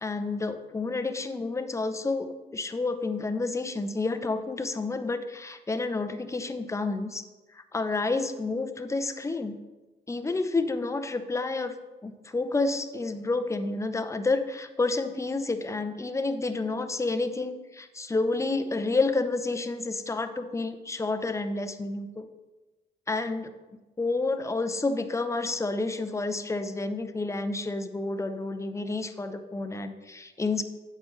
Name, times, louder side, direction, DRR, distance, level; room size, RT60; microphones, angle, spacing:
voice 1, 0.0-7.2 7.5-9.6 10.1-11.7 12.0-22.3 23.1-23.5 24.0-30.6, left 3 dB, 15° left, 7 dB, 0.6 m, -29 dB
9.1 x 6.7 x 3.2 m, 1.2 s
cardioid pair, 90°, 20 cm